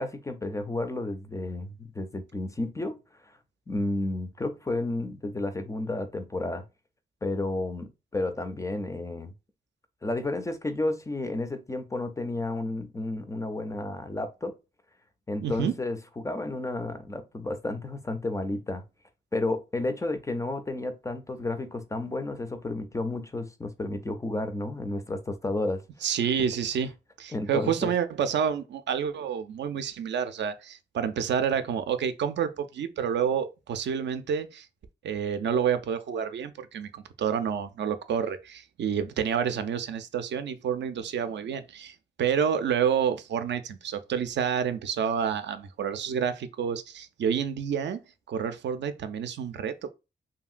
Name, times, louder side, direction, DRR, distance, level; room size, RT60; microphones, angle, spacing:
voice 1, 0.0-3.0 3.2-3.3 3.7-6.6 7.2-9.3 10.0-14.5 15.3-18.8 19.3-25.8 27.3-27.9, left 2 dB, 15° left, 0.3 m, -32 dB
voice 2, 15.4-15.7 26.0-26.9 27.2-34.7 35.0-48.0 48.3-49.9, right 7 dB, 75° right, 0.4 m, -29 dB
2.8 x 2.7 x 2.4 m
wide cardioid pair, 150°, 19 cm